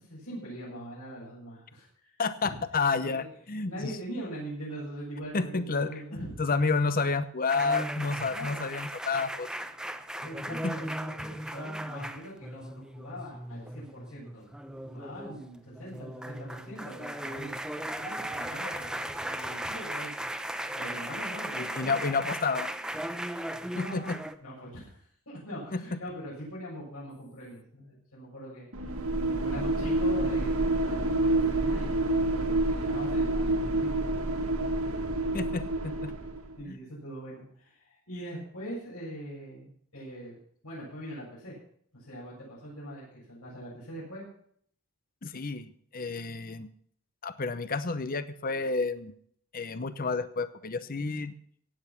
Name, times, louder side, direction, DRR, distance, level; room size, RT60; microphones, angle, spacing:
voice 1, 0.0-2.1 2.4-2.6 3.0-3.2 3.7-6.4 8.3-8.6 10.0-14.5 14.8-20.3 20.7-22.0 23.7-24.1 24.4-28.7 29.3-34.0 36.6-40.4 40.6-41.6 41.9-44.3, equal, 80° left, -8 dB, 7.0 m, -42 dB
voice 2, 2.2-3.9 5.3-9.5 10.6-10.7 21.6-22.7 23.8-24.2 25.7-25.8 35.3-36.1 36.7-36.8 45.2-46.7 47.2-49.1 49.5-51.3, left 4 dB, 40° left, 12 dB, 0.8 m, -30 dB
sound 1, 7.5-24.3, right 1 dB, 5° right, 0.7 m, -37 dB
sound 2, 28.7-36.5, right 2 dB, 75° right, 1.7 m, -28 dB
16.5 x 9.1 x 5.9 m, 0.62 s
head